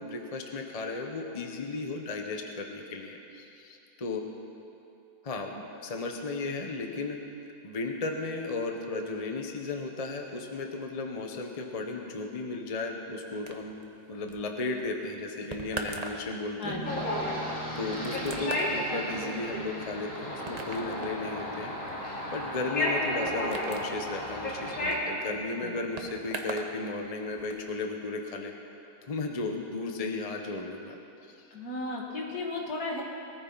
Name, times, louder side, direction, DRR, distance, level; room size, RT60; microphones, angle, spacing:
voice 1, 0.0-4.2 5.2-7.2 7.6-13.7 14.1-16.9 17.8-21.7 22.3-28.5 29.1-31.0 31.2-31.5, left 3 dB, 25° left, 3 dB, 0.9 m, -35 dB
sound 1, 13.5-26.7 27.0-27.6, right 3 dB, 30° right, 0.8 m, -42 dB
voice 2, 16.6-17.1 25.6-25.8 31.5-33.0, left 2 dB, 65° left, -2 dB, 2.5 m, -35 dB
Bass guitar, 16.6-20.1, right 2 dB, 60° right, 2.5 m, -44 dB
sound 2, 16.8-24.9, left 1 dB, 50° left, 3.5 m, -33 dB
21.0 x 14.5 x 4.0 m, 2.7 s
omnidirectional pair, 1.8 m